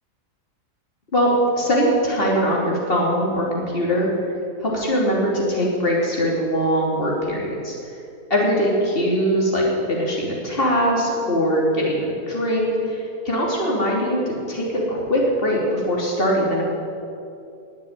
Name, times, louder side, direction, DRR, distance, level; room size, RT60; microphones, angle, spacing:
voice 1, 1.1-4.1 4.6-7.7 8.3-16.6, equal, 35° left, -3 dB, 3.3 m, -21 dB
19.5 x 7.4 x 9.1 m, 2.6 s
omnidirectional pair, 1.7 m